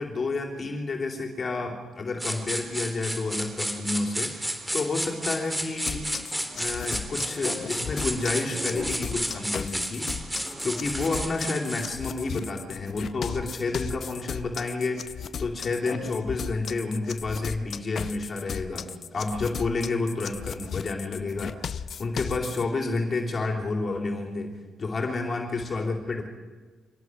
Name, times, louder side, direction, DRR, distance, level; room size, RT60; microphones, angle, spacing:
voice 1, 0.0-6.0 6.6-10.1 10.6-15.0 15.4-18.9 19.1-21.7 22.0-26.2, left 3 dB, 40° left, 2 dB, 3.8 m, -30 dB
sound 1, 2.2-11.9, right 1 dB, 10° right, 3.5 m, -32 dB
sound 2, 5.9-22.6, left 7 dB, 55° left, 0.8 m, -36 dB
24.5 x 17.5 x 6.6 m, 1.3 s
cardioid pair, 90°, 0 cm